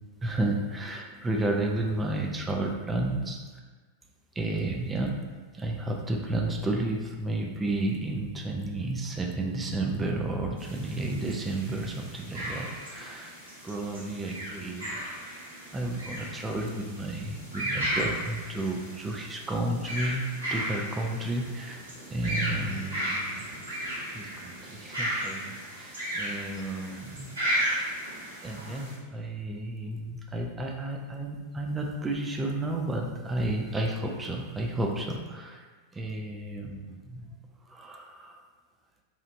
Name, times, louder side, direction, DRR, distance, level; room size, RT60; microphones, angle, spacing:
voice 1, 0.2-3.4 4.3-5.2 5.5-13.4 13.6-15.4 15.7-21.8 22.1-23.4 23.8-28.0 28.4-35.6 35.9-37.3 37.7-38.4, right 2 dB, 15° right, 1 dB, 0.3 m, -32 dB
sound 1, 10.6-28.9, right 1 dB, 75° right, 1.0 m, -35 dB
2.9 x 2.4 x 2.6 m, 1.3 s
figure-of-eight pair, 90°, 0 cm